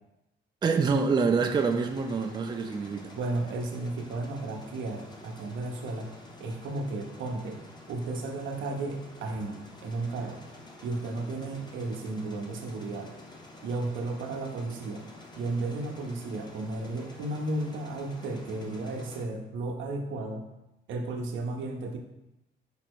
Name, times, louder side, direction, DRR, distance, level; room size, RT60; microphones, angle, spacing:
voice 1, 0.6-3.1, right 4 dB, 20° right, 5 dB, 0.3 m, -26 dB
sound 1, 1.4-19.3, left 2 dB, 20° left, 0.7 m, -49 dB
voice 2, 3.1-6.1 6.4-7.6 7.9-10.4 10.8-13.1 13.6-15.1 15.4-20.5 20.9-22.0, right 2 dB, 75° right, 3 dB, 0.7 m, -34 dB
5.1 x 2.1 x 4.5 m, 0.90 s
cardioid pair, 90°, 20 cm